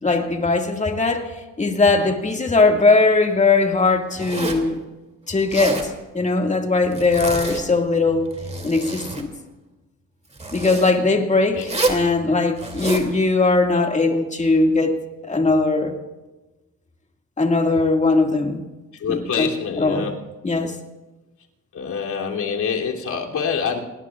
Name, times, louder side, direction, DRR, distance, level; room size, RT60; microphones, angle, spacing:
voice 1, 0.0-1.3 1.6-4.8 5.3-8.3 8.6-9.3 10.5-15.0 15.3-15.9 17.4-18.6 19.1-19.5 19.8-20.1 20.4-20.8, left 3 dB, 20° left, 3 dB, 2.1 m, -19 dB
Zipper (clothing), 4.1-4.7 5.4-5.9 6.9-7.7 8.3-9.3 10.3-10.9 11.6-12.0 12.6-13.1, right 2 dB, 20° right, 2.8 m, -27 dB
voice 2, 19.0-20.1 21.7-23.8, left 6 dB, 60° left, -1 dB, 3.2 m, -25 dB
28.0 x 19.5 x 2.5 m, 1.1 s
cardioid pair, 100°, 33 cm